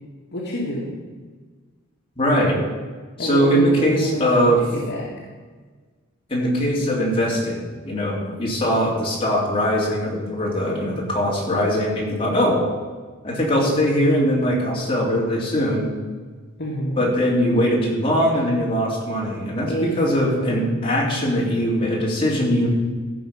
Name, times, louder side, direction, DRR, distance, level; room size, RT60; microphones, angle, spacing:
voice 1, 0.3-0.9 3.2-5.1 16.6-17.1 19.7-20.6, equal, 55° left, -6 dB, 1.8 m, -28 dB
voice 2, 2.2-2.6 3.2-4.6 6.3-12.7 13.2-15.9 17.0-22.7, equal, 25° left, -4 dB, 2.8 m, -21 dB
14.5 x 5.7 x 5.6 m, 1.4 s
head